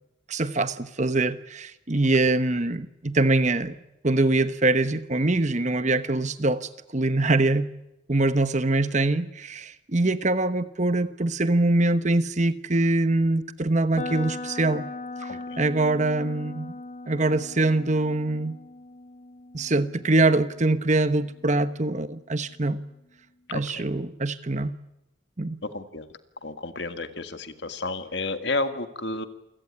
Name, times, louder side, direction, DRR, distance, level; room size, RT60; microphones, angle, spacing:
voice 1, 0.3-3.7 4.0-7.7 8.1-14.9 15.6-16.7 17.1-18.6 19.5-22.8 23.5-24.8 25.4-25.6, right 2 dB, 35° right, 12 dB, 1.1 m, -23 dB
sound 1, 13.9-21.9, left 2 dB, 30° left, 0.9 m, -39 dB
voice 2, 15.3-15.6 23.5-23.8 25.6-26.1 26.4-29.3, left 2 dB, 55° left, 9 dB, 1.9 m, -31 dB
28.0 x 17.0 x 9.9 m, 0.91 s
head